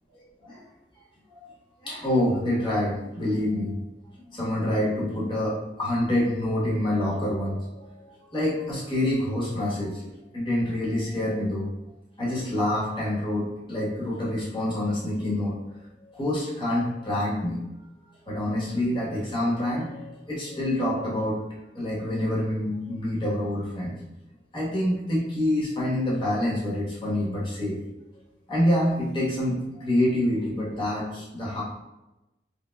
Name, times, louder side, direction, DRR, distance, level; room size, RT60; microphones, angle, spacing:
voice 1, 1.8-3.8 4.3-10.1 10.3-11.7 12.2-15.6 16.0-17.6 18.3-21.4 21.7-23.9 24.5-27.8 28.5-31.6, left 1 dB, 25° left, -6 dB, 1.2 m, -27 dB
3.3 x 3.3 x 2.3 m, 0.98 s
head